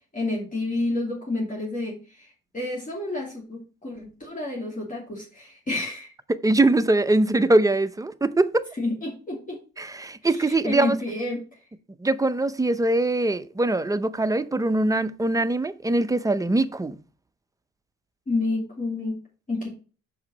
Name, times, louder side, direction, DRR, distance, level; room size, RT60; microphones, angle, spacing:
voice 1, 0.1-6.1 8.8-9.6 10.2-11.4 18.3-19.2 19.5-19.7, left 2 dB, 25° left, 2.7 m, -30 dB
voice 2, 6.3-8.7 9.8-11.0 12.0-17.0, right 2 dB, 10° right, 0.6 m, -22 dB
7.0 x 4.8 x 5.4 m
cardioid pair, 90°, 30 cm